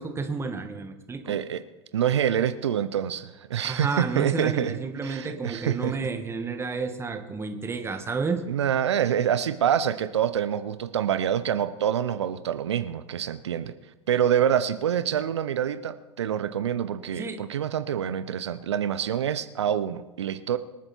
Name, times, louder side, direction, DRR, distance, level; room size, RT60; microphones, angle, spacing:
voice 1, 0.0-1.4 3.6-8.4 17.2-17.4, right 4 dB, 15° right, 6 dB, 2.0 m, -31 dB
voice 2, 1.3-1.6 1.9-6.0 8.5-13.7 14.1-20.6, right 9 dB, 75° right, 12 dB, 0.7 m, -26 dB
25.5 x 8.8 x 4.5 m, 1.1 s
hypercardioid pair, 90°, 14 cm